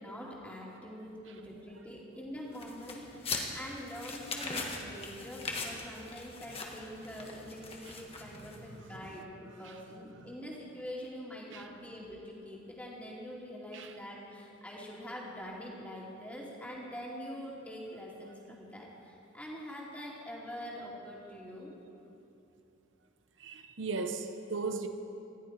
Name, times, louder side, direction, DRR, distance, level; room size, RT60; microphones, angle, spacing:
voice 1, 0.0-21.7, equal, 5° left, -4 dB, 2.6 m, -44 dB
sound 1, 2.5-8.8, left 3 dB, 30° left, 1.5 m, -41 dB
voice 2, 7.8-10.4 11.5-11.7 13.7-14.0 23.4-24.9, right 4 dB, 70° right, 6 dB, 0.8 m, -41 dB
19.5 x 14.5 x 4.8 m, 2.8 s
head